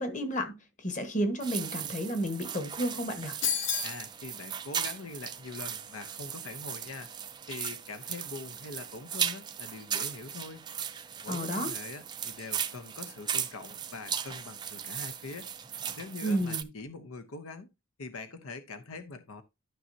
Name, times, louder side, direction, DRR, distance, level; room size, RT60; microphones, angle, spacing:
voice 1, 0.0-3.4 11.3-11.7 16.2-16.7, equal, 35° left, 1.5 m, -32 dB
sound 1, 1.4-16.6, right 8 dB, 20° right, 0.5 m, -37 dB
sound 2, 3.4-4.0, left 8 dB, 60° left, 1.1 m, -29 dB
voice 2, 3.8-7.2 7.5-10.6 11.2-15.5 15.9-17.7 18.0-19.4, left 3 dB, 90° left, 0.9 m, -43 dB
12.5 x 5.5 x 2.8 m
head